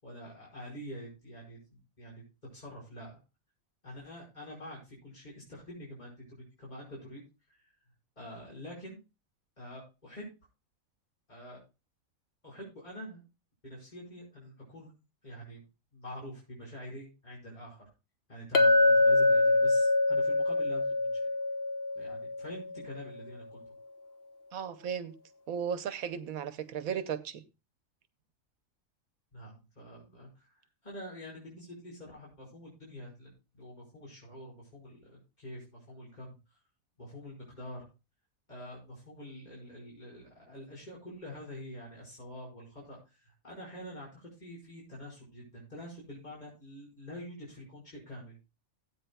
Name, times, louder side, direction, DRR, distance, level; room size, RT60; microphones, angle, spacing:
voice 1, 0.0-2.2 2.5-3.2 3.8-7.2 7.6-7.7 8.1-9.0 9.6-10.3 11.3-11.6 12.4-13.2 13.6-14.9 15.2-15.6 15.9-17.8 18.3-21.2 21.9-23.6 29.3-30.5 30.8-36.4 37.0-37.9 38.5-48.4, equal, 30° left, 5.2 m, -46 dB
Chink clink, 18.5-23.0, left 2 dB, 50° left, 1.0 m, -25 dB
voice 2, 24.5-25.1 25.5-27.4, right 8 dB, 80° right, 1.2 m, -35 dB
18.0 x 8.6 x 2.2 m
omnidirectional pair, 1.5 m